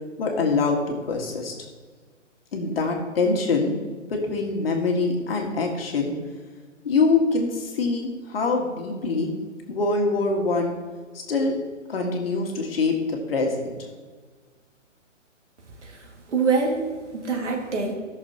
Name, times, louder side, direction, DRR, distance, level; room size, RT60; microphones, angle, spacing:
voice 1, 0.2-0.8 1.0-1.5 2.5-3.7 4.1-6.1 6.8-9.3 9.7-10.7 11.1-11.5 11.9-13.7, left 3 dB, 50° left, 1 dB, 1.8 m, -24 dB
voice 2, 15.8-17.9, right 4 dB, 65° right, 1 dB, 2.2 m, -25 dB
14.5 x 6.6 x 2.9 m, 1.5 s
hypercardioid pair, 160°, 38 cm